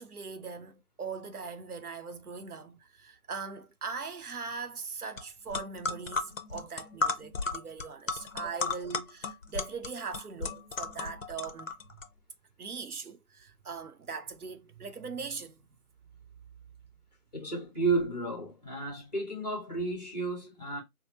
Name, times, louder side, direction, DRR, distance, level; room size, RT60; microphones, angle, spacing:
voice 1, 0.0-11.7 12.6-15.7, right 5 dB, 80° right, 0.8 m, -40 dB
sound 1, 5.2-5.3 5.5-12.1, left 3 dB, 60° left, 0.7 m, -34 dB
voice 2, 17.3-20.8, right 3 dB, 30° left, 1.0 m, -32 dB
3.6 x 2.0 x 2.9 m
figure-of-eight pair, 170°, 44 cm